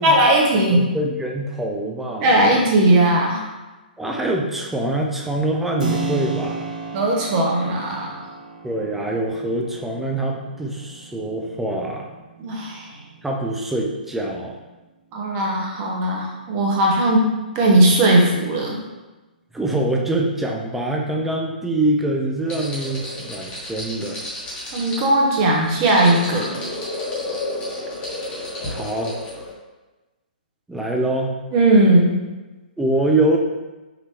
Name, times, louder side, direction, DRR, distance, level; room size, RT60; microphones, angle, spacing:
voice 1, 0.0-0.8 2.2-3.4 6.9-8.2 12.4-13.0 15.1-18.8 24.7-26.6 31.5-32.1, right 1 dB, 35° right, -1 dB, 1.0 m, -18 dB
voice 2, 0.7-2.6 4.0-6.7 8.6-12.1 13.2-14.6 19.5-24.2 28.7-29.2 30.7-31.3 32.8-33.4, right 1 dB, 5° right, 0 dB, 0.5 m, -24 dB
Keyboard (musical), 5.8-14.4, right 4 dB, 60° right, 0.9 m, -34 dB
sound 1, 22.5-29.5, left 1 dB, 20° left, 1.4 m, -31 dB
5.3 x 2.9 x 2.9 m, 1.1 s
figure-of-eight pair, 125°, 5 cm